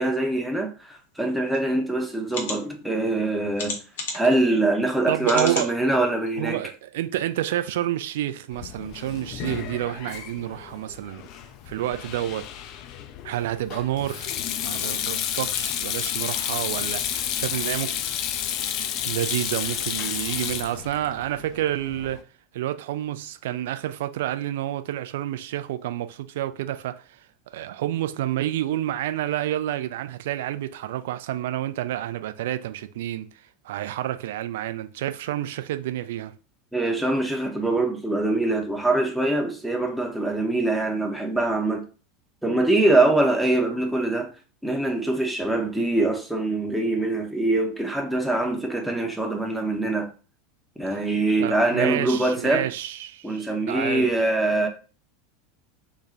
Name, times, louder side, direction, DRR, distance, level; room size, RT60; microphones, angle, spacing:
voice 1, 0.0-3.8 4.1-6.6 36.7-41.8 42.4-44.3 44.6-50.1 50.8-52.7 53.2-54.7, right 2 dB, ahead, 0.6 m, -23 dB
sound 1, 1.5-1.6 2.3-2.6 3.6-4.3 5.2-5.7 6.3-6.4 6.7-6.8, left 3 dB, 65° left, 0.9 m, -31 dB
voice 2, 5.1-5.7 6.4-11.3 11.7-12.5 13.2-14.3 14.6-17.9 19.0-22.2 22.5-27.2 27.5-33.3 33.6-36.3 50.9-51.0 51.4-54.1, right 13 dB, 60° right, 0.3 m, -29 dB
Sink (filling or washing), 8.5-22.2, left 10 dB, 45° left, 0.3 m, -31 dB
3.0 x 2.2 x 3.8 m
figure-of-eight pair, 80°, 0 cm